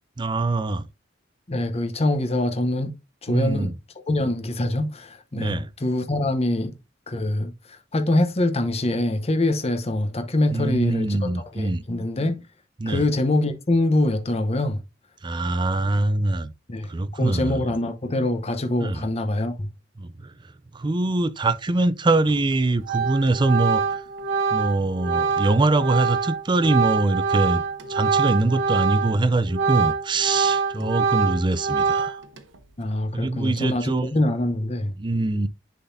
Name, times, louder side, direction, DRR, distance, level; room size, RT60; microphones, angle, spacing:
voice 1, 0.2-0.9 3.3-3.7 5.4-5.7 10.5-11.8 12.8-13.1 15.2-16.5 16.9-17.6 18.8-19.0 20.0-20.3 20.7-24.0 24.5-27.6 27.9-32.2 33.1-34.1 35.0-35.5, right 2 dB, 25° right, 0.4 m, -23 dB
voice 2, 1.5-2.9 3.2-3.7 4.1-6.8 7.1-7.5 7.9-12.4 12.9-14.8 16.7-16.9 17.2-19.7 30.8-30.9 32.8-33.8 34.1-34.9, left 1 dB, 35° left, 0.9 m, -24 dB
Organ, 22.3-22.5 22.9-29.2 29.5-32.4, right 5 dB, 85° right, 1.0 m, -24 dB
10.0 x 3.9 x 2.7 m
head